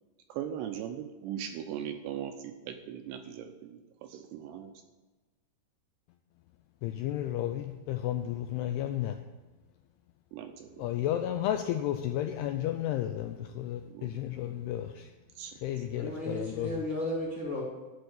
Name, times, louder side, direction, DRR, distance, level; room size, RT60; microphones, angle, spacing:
voice 1, 0.3-4.7 10.3-10.9 13.8-14.2 15.4-15.6, right 9 dB, 80° right, 5 dB, 2.6 m, -39 dB
voice 2, 6.8-9.2 10.8-15.1 15.6-16.8, left 12 dB, 90° left, 6 dB, 2.3 m, -32 dB
voice 3, 15.9-17.6, left 1 dB, 45° left, -4 dB, 1.5 m, -34 dB
11.5 x 4.3 x 8.0 m, 1.2 s
omnidirectional pair, 5.2 m